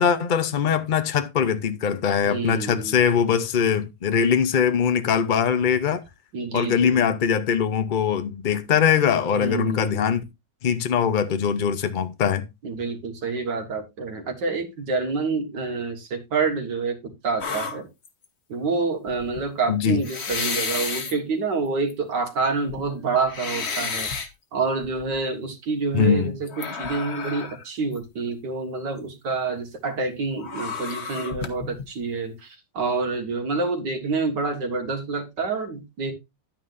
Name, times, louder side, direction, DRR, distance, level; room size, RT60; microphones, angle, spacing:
voice 1, 0.0-6.0 6.5-10.2 10.6-12.5 19.7-20.0 25.9-26.4, left 7 dB, 75° left, 0.4 m, -22 dB
voice 2, 2.2-3.0 6.3-7.0 9.3-10.1 12.6-17.9 18.5-24.1 24.5-36.1, right 4 dB, 65° right, 2.2 m, -27 dB
sound 1, 17.4-18.2 19.1-19.4 20.0-21.1 21.9-22.0 22.5-24.3 24.8-25.2 26.5-27.7 27.9-28.0 30.4-31.8, left 5 dB, 40° left, 1.2 m, -31 dB
11.0 x 9.2 x 2.6 m
omnidirectional pair, 2.0 m